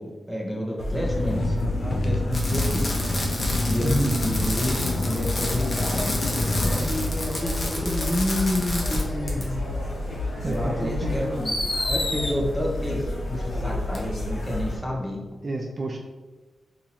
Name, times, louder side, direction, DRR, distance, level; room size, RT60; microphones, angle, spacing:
voice 1, 0.0-2.9 3.7-9.6 10.4-15.2, left 1 dB, 10° left, -2 dB, 0.9 m, -29 dB
sound 1, 0.8-14.8, left 1 dB, 85° left, 1.2 m, -30 dB
sound 2, 1.0-7.8, left 1 dB, 65° left, 0.5 m, -29 dB
Fireworks, 2.3-9.0 9.3-9.4 10.5-10.6 11.4-12.3 13.9-14.0, left 1 dB, 40° left, 0.9 m, -30 dB
voice 2, 3.8-4.2 10.4-11.2 15.4-16.0, right 1 dB, 45° right, 1 dB, 0.4 m, -28 dB
2.9 x 2.8 x 4.1 m, 1.2 s
cardioid pair, 75°, 0 cm